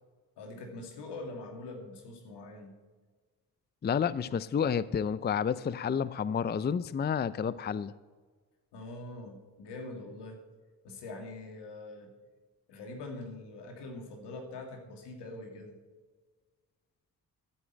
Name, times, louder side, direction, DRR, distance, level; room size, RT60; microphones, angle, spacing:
voice 1, 0.4-2.7 8.7-10.4 10.8-12.1 12.7-15.8, left 2 dB, 85° left, 3 dB, 2.2 m, -43 dB
voice 2, 3.8-7.9, left 7 dB, 25° left, 17 dB, 0.5 m, -30 dB
13.0 x 6.2 x 8.0 m, 1.4 s
cardioid pair, 60°, 40 cm